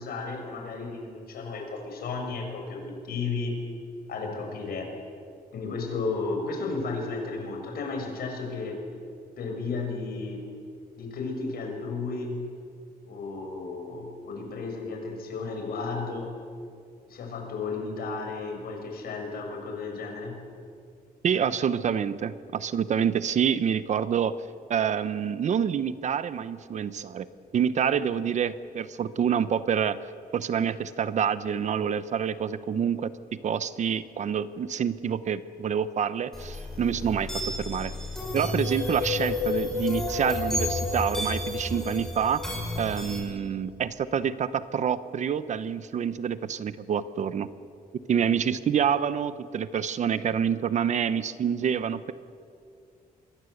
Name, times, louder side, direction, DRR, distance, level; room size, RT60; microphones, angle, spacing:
voice 1, 0.0-3.5 4.1-4.9 5.5-8.8 9.4-10.4 11.0-12.4 13.1-16.3 17.1-20.4, left 4 dB, 75° left, 3 dB, 6.2 m, -33 dB
voice 2, 21.2-24.4 24.7-27.3 27.5-30.0 30.3-37.9 38.3-42.4 42.8-47.5 47.9-52.1, right 8 dB, 50° right, 14 dB, 0.9 m, -27 dB
sound 1, 36.3-43.2, left 3 dB, 5° left, 6.1 m, -31 dB
27.5 x 22.0 x 8.0 m, 2.4 s
wide cardioid pair, 170°, 16 cm